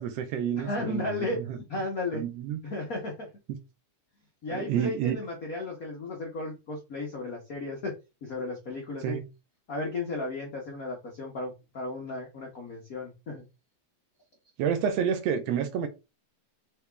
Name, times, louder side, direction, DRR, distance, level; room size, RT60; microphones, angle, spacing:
voice 1, 0.0-1.6 2.1-2.6 4.5-5.2 9.0-9.2 14.6-15.9, right 8 dB, 70° right, 1.9 m, -29 dB
voice 2, 0.6-1.4 1.7-2.2 2.6-3.3 4.4-7.9 8.2-9.2 9.7-13.4, left 2 dB, 80° left, 0.7 m, -34 dB
4.9 x 2.9 x 3.4 m
omnidirectional pair, 3.3 m